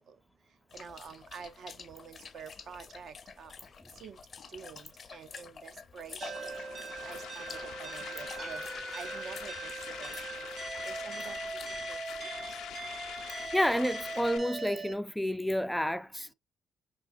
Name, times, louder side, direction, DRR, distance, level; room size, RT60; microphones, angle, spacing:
sound 1, 0.7-14.3, left 6 dB, 45° left, 0.6 m, -50 dB
voice 1, 0.7-3.5 4.0-4.2 4.5-6.5 7.0-8.6 8.9-10.5 10.9-11.4 11.6-12.3, right 6 dB, 65° right, 0.5 m, -48 dB
sound 2, 6.2-14.4, left 10 dB, 90° left, 0.5 m, -44 dB
sound 3, 6.2-14.9, right 3 dB, 45° right, 1.0 m, -40 dB
voice 2, 13.5-16.3, equal, 5° left, 0.3 m, -30 dB
4.8 x 3.7 x 2.4 m
cardioid pair, 90°, 0 cm